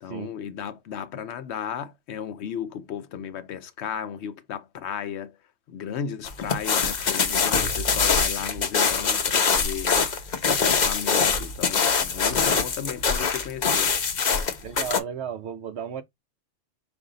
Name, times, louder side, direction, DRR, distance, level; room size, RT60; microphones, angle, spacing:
voice 1, 0.0-5.4 5.7-10.0 10.5-14.0, left 8 dB, 80° left, 0.9 m, -35 dB
sound 1, 6.2-15.0, left 5 dB, 45° left, 0.8 m, -23 dB
voice 2, 14.6-16.0, right 8 dB, 70° right, 1.0 m, -34 dB
5.0 x 2.7 x 3.7 m
omnidirectional pair, 1.1 m